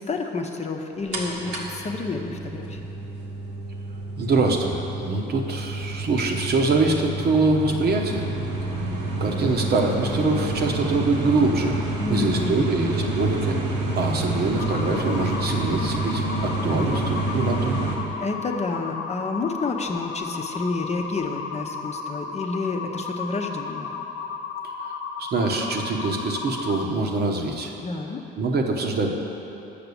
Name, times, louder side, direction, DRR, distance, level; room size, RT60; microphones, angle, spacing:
voice 1, 0.1-2.9 12.0-12.7 18.2-24.0 27.8-28.2, left 3 dB, 30° left, 3 dB, 0.8 m, -29 dB
sound 1, 1.1-18.0, right 2 dB, 75° right, 1.4 m, -28 dB
voice 2, 4.2-8.3 9.2-11.8 12.1-13.6 13.9-17.8 24.6-24.9 25.2-27.7 28.3-29.1, right 3 dB, 50° right, 2 dB, 1.0 m, -24 dB
sound 2, 14.6-26.9, left 5 dB, 65° left, 0.7 m, -34 dB
6.8 x 5.9 x 7.0 m, 3.0 s
supercardioid pair, 70°, 21 cm